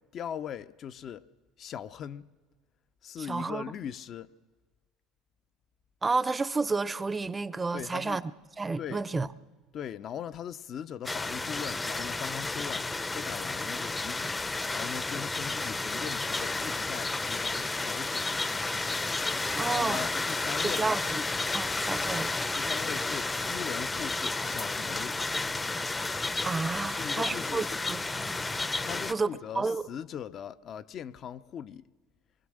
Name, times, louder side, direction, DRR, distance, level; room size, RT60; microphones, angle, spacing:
voice 1, 0.1-1.2 1.6-2.3 3.0-4.3 7.7-8.2 8.8-9.0 9.7-14.4 14.7-18.3 19.4-21.3 22.5-25.2 26.8-27.7 28.8-31.8, left 9 dB, 50° left, 0.7 m, -40 dB
voice 2, 3.3-3.6 6.0-8.2 8.6-9.3 19.5-20.1 20.6-21.2 21.5-22.3 26.4-28.3 29.1-29.3 29.6-29.8, right 3 dB, 20° right, 0.7 m, -30 dB
sound 1, 11.0-29.1, left 3 dB, 15° left, 0.7 m, -32 dB
24.0 x 23.0 x 6.5 m
supercardioid pair, 85°, 0 cm